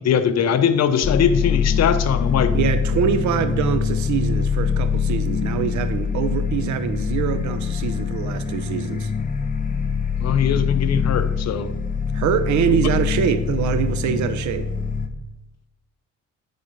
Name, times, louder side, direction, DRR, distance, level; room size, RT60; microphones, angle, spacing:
voice 1, 0.0-2.6 10.2-11.7, left 8 dB, 60° left, 0.8 m, -21 dB
sound 1, 1.0-15.1, left 6 dB, 25° left, 0.9 m, -24 dB
voice 2, 2.5-9.1 12.1-14.7, right 8 dB, 70° right, 0.8 m, -24 dB
9.5 x 4.2 x 5.2 m
cardioid pair, 90°, 30 cm